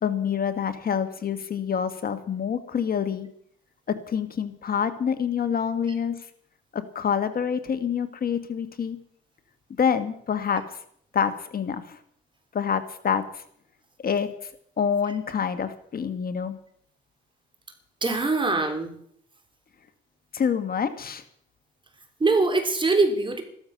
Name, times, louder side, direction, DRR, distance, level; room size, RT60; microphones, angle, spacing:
voice 1, 0.0-3.3 3.9-6.1 6.7-9.0 9.8-10.8 11.1-12.0 12.5-13.4 14.0-14.3 14.8-16.6 20.3-21.2, left 7 dB, 50° left, 10 dB, 1.5 m, -27 dB
voice 2, 18.0-19.0 22.2-23.4, right 3 dB, 25° right, 6 dB, 3.4 m, -23 dB
14.5 x 13.5 x 6.5 m, 0.65 s
cardioid pair, 90°, 20 cm